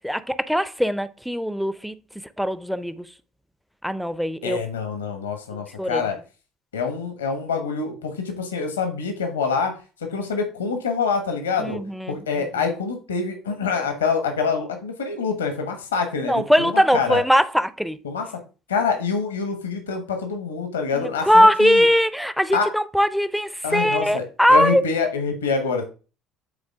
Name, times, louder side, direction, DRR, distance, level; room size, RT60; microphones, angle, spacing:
voice 1, 0.0-1.9 2.4-3.0 3.8-4.6 5.8-6.0 11.6-12.2 16.2-18.0 20.9-24.8, equal, ahead, 0.6 m, -20 dB
voice 2, 4.4-6.2 6.7-9.7 10.1-11.8 12.1-17.2 18.0-18.3 18.7-21.8 22.5-22.7 23.6-25.8, left 5 dB, 80° left, 1.2 m, -26 dB
8.9 x 3.9 x 3.6 m
figure-of-eight pair, 60°, 0 cm